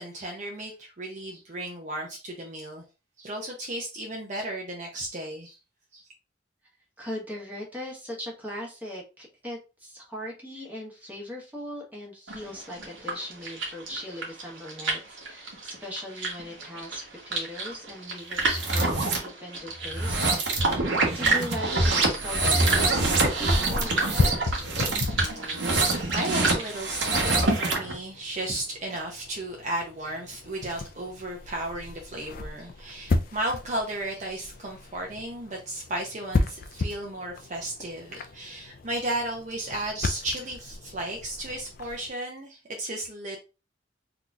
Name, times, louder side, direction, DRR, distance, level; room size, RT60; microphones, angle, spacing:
voice 1, 0.0-2.8 3.2-5.6 5.9-6.0 25.4-25.7 26.1-43.4, right 1 dB, 40° right, 0.6 m, -34 dB
voice 2, 7.0-20.2 20.5-24.4, equal, 10° right, 1.3 m, -39 dB
sound 1, 12.3-27.5, right 3 dB, 90° right, 1.3 m, -33 dB
sound 2, 18.4-19.2 19.9-27.9, right 2 dB, 65° right, 1.0 m, -25 dB
sound 3, 22.8-42.1, left 3 dB, 50° left, 0.4 m, -34 dB
3.9 x 2.9 x 2.4 m
head